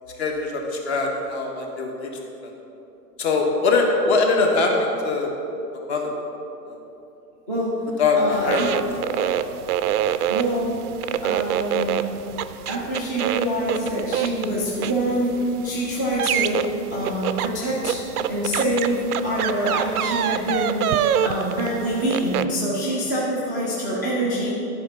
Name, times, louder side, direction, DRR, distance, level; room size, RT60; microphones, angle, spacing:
voice 1, 0.2-2.1 2.4-2.5 3.2-5.3 5.7-6.1 6.7-6.8 8.0-9.4, left 3 dB, 40° left, 1 dB, 1.2 m, -22 dB
voice 2, 7.5-7.8 8.2-8.7 10.3-10.8 11.2-12.0 12.7-16.6 16.9-18.0 18.3-20.9 21.2-24.5, right 1 dB, 10° left, -8 dB, 0.4 m, -25 dB
sound 1, 8.3-22.4, right 9 dB, 65° right, 0.5 m, -27 dB
11.5 x 4.9 x 5.6 m, 2.9 s
hypercardioid pair, 160°, 49 cm